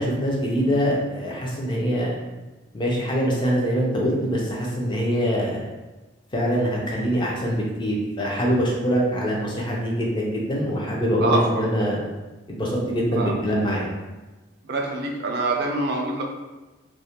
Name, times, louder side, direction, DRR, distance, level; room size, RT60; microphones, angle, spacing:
voice 1, 0.0-2.1 2.7-5.7 6.3-12.0 12.5-13.8, equal, 25° left, -3 dB, 0.4 m, -24 dB
voice 2, 11.2-11.6 13.1-13.3 14.6-16.2, right 2 dB, 55° right, 1 dB, 0.4 m, -25 dB
2.3 x 2.1 x 2.8 m, 1.2 s
head